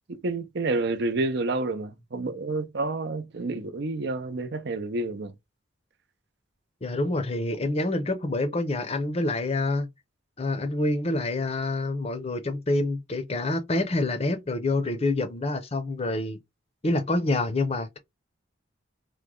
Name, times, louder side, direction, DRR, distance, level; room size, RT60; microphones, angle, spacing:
voice 1, 0.1-5.3, right 2 dB, 55° right, 0.6 m, -29 dB
voice 2, 6.8-9.9 10.4-16.4 16.8-18.0, left 2 dB, 30° left, 0.6 m, -27 dB
3.0 x 2.2 x 3.7 m
head